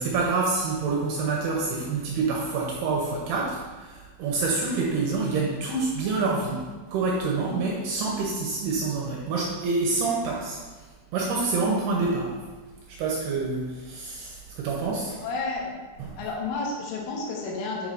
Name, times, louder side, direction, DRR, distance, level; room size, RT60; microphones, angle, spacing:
voice 1, 0.0-10.6 11.1-12.4 12.9-15.2 16.0-16.1, right 3 dB, 75° right, -2 dB, 2.5 m, -27 dB
voice 2, 15.2-15.7 16.2-17.9, left 3 dB, 85° left, -2 dB, 3.9 m, -31 dB
8.5 x 7.0 x 2.7 m, 1.3 s
omnidirectional pair, 5.5 m